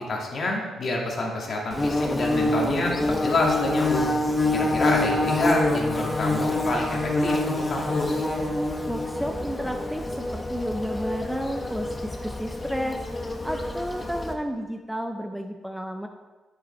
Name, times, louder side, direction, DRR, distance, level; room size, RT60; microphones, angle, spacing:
voice 1, 0.1-4.1 4.5-8.2, left 2 dB, 50° left, -1 dB, 1.9 m, -27 dB
Bird / Buzz, 1.7-14.3, left 2 dB, 15° left, 0.9 m, -26 dB
voice 2, 8.9-16.1, equal, 5° right, 5 dB, 0.5 m, -32 dB
10.0 x 5.4 x 4.3 m, 1.3 s
cardioid pair, 105°, 0 cm